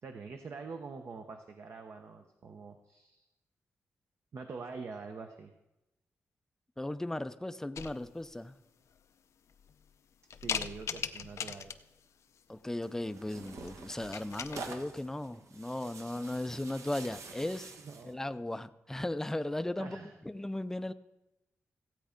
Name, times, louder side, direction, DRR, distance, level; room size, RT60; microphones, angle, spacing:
voice 1, 0.0-3.3 4.3-5.5 10.4-11.7 17.8-18.2 19.8-20.2, right 4 dB, 60° right, 5 dB, 0.9 m, -45 dB
voice 2, 6.8-8.5 12.5-17.7 18.0-20.9, left 1 dB, 10° left, 12 dB, 0.5 m, -37 dB
sound 1, 7.7-8.3 8.9-9.0 9.5-9.9 10.3-12.0 13.5-13.7 14.0-14.6, left 7 dB, 75° left, 0.6 m, -39 dB
Tearing, 12.8-18.1, right 4 dB, 75° right, 1.2 m, -48 dB
15.5 x 8.3 x 5.1 m, 0.95 s
wide cardioid pair, 120°, 5 cm